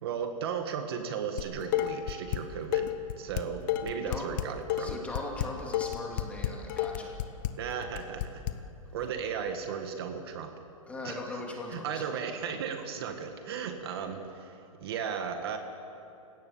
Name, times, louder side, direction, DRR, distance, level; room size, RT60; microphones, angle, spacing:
voice 1, 0.0-5.0 7.6-8.2 8.9-10.5 11.0-11.4 11.7-15.6, right 7 dB, 45° right, 6 dB, 1.8 m, -36 dB
Dishes pots and pans, 1.4-2.4 2.7-8.5, left 13 dB, 30° left, 0.9 m, -31 dB
voice 2, 4.8-7.2 10.9-12.0, left 2 dB, 5° left, 0 dB, 2.5 m, -39 dB
29.5 x 17.0 x 7.3 m, 2.8 s
hypercardioid pair, 170°, 18 cm